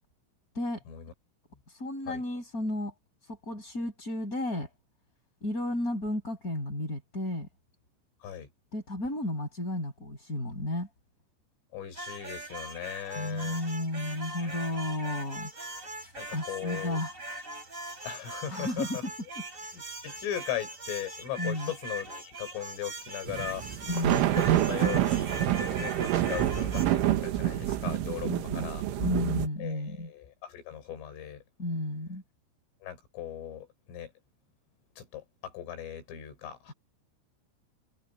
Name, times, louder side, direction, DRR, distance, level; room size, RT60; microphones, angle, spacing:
voice 1, 1.8-2.9 3.3-4.7 5.4-7.5 8.7-10.9 13.1-15.5 16.0-17.1 18.5-19.0 21.4-21.7 23.8-24.3 25.8-25.9 28.2-28.7 29.0-30.1 31.6-32.2, left 1 dB, 15° left, 6.6 m, -33 dB
voice 2, 11.7-13.6 14.4-14.8 16.2-17.0 18.0-19.0 19.7-23.6 24.0-24.1 24.4-28.9 29.6-31.4 32.8-34.1 35.0-36.7, left 10 dB, 85° left, 7.1 m, -38 dB
sound 1, 11.9-26.9, right 1 dB, 15° right, 7.7 m, -41 dB
sound 2, 23.3-29.5, right 12 dB, 80° right, 4.1 m, -27 dB
omnidirectional pair, 5.6 m